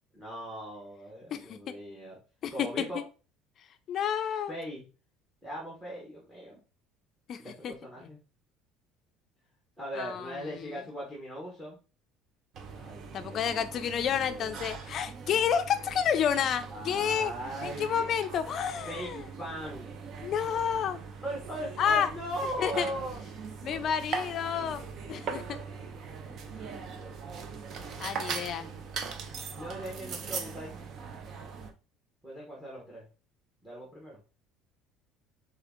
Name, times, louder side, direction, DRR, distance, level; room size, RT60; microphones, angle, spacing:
voice 1, 0.1-2.2 2.5-3.0 4.5-4.8 5.4-6.6 7.4-8.2 9.8-11.8 12.7-14.6 16.7-18.1 18.9-19.1 19.4-19.9 21.2-23.2 25.7-27.1 29.5-30.8 32.2-33.1 33.6-34.2, right 1 dB, 5° right, -3 dB, 1.1 m, -39 dB
voice 2, 1.3-1.7 2.4-2.7 3.9-4.5 7.3-7.7 8.0-8.1 10.0-10.8 13.1-17.3 17.6-19.2 20.2-21.0 21.8-22.1 22.6-22.9 23.6-25.4 28.0-28.7, left 8 dB, 35° left, 9 dB, 0.5 m, -30 dB
sound 1, 12.5-31.7, right 5 dB, 35° right, 0.5 m, -41 dB
3.8 x 3.6 x 3.5 m, 0.33 s
cardioid pair, 175°, 0 cm